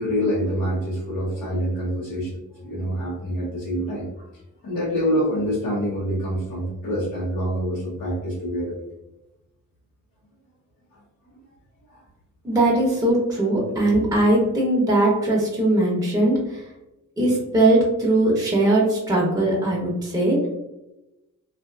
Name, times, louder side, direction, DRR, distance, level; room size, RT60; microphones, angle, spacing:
voice 1, 0.0-4.2 4.6-8.8 11.9-12.0, equal, 90° left, -7 dB, 0.9 m, -26 dB
voice 2, 12.4-16.6 17.2-20.5, right 1 dB, 10° right, -3 dB, 0.7 m, -20 dB
2.5 x 2.4 x 2.3 m, 0.94 s
cardioid pair, 70°, 32 cm